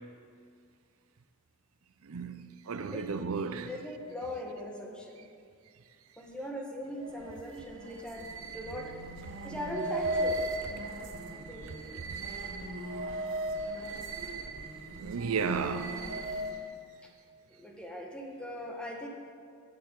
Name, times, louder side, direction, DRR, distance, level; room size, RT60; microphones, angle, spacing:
voice 1, 2.0-3.7 15.0-16.0, right 5 dB, 80° right, 0.5 m, -33 dB
voice 2, 3.7-5.3 6.2-8.9 9.4-10.5 11.3-11.7 17.0-17.1 17.5-19.1, left 1 dB, 5° left, 1.2 m, -40 dB
sound 1, 7.0-16.7, right 1 dB, 60° right, 1.1 m, -37 dB
7.8 x 7.6 x 8.0 m
head